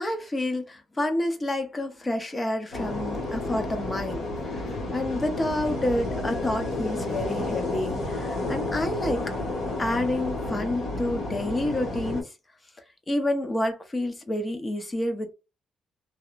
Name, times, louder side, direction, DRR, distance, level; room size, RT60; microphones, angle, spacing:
voice 1, 0.0-4.6 4.9-9.3 9.8-12.3 13.1-15.3, left 1 dB, 25° left, 0.7 m, -29 dB
sound 1, 2.7-12.2, left 2 dB, 75° left, 1.5 m, -31 dB
sound 2, 4.0-9.4, equal, 50° left, 1.1 m, -44 dB
2.7 x 2.1 x 2.4 m
cardioid pair, 90°, 0 cm